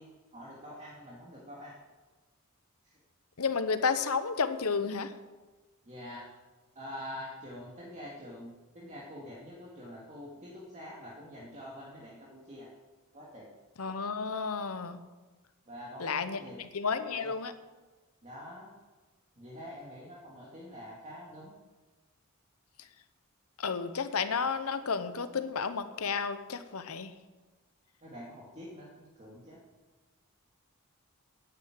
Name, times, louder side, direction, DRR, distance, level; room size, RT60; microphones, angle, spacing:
voice 1, 0.0-1.8 2.8-2.9 5.8-6.2 6.7-12.7 13.1-13.5 15.7-16.6 17.1-17.3 18.2-18.7 19.4-21.5 28.0-29.6, equal, 30° right, -5 dB, 2.2 m, -46 dB
voice 2, 3.4-5.1 13.8-15.0 16.0-17.5 23.6-27.1, left 5 dB, 80° left, 11 dB, 0.9 m, -32 dB
9.7 x 9.5 x 8.9 m, 1.2 s
head